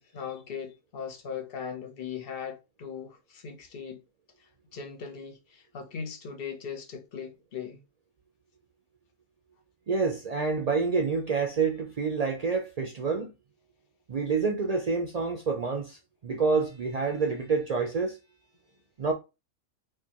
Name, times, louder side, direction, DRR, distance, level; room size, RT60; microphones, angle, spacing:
voice 1, 0.0-4.0 4.4-7.8, left 6 dB, 50° left, 0.8 m, -39 dB
voice 2, 9.9-13.3 14.1-18.2 19.0-19.1, right 4 dB, 85° right, 0.3 m, -28 dB
4.7 x 2.2 x 2.9 m
omnidirectional pair, 1.5 m